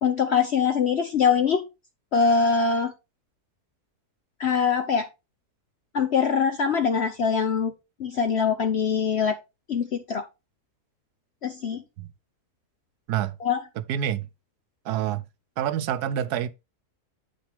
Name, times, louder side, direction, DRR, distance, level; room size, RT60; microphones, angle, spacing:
voice 1, 0.0-1.7 2.1-2.9 4.4-5.0 5.9-7.7 8.0-9.3 9.7-10.2 11.4-11.8 13.4-13.6, left 6 dB, 55° left, 0.9 m, -23 dB
voice 2, 13.9-14.3 14.8-15.2 15.6-16.5, right 10 dB, 85° right, 1.2 m, -27 dB
8.3 x 6.0 x 3.4 m
omnidirectional pair, 1.6 m